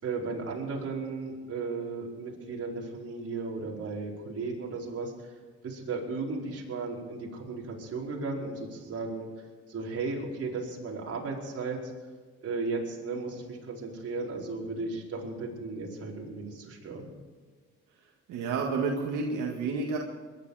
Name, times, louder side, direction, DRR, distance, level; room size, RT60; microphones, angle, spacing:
voice 1, 0.0-5.3 5.6-9.3 9.7-11.9 12.4-17.1, right 3 dB, 50° right, -2 dB, 5.0 m, -35 dB
voice 2, 18.3-20.0, right 4 dB, 85° right, -1 dB, 2.0 m, -30 dB
22.0 x 11.5 x 5.1 m, 1.5 s
cardioid pair, 90°, 30 cm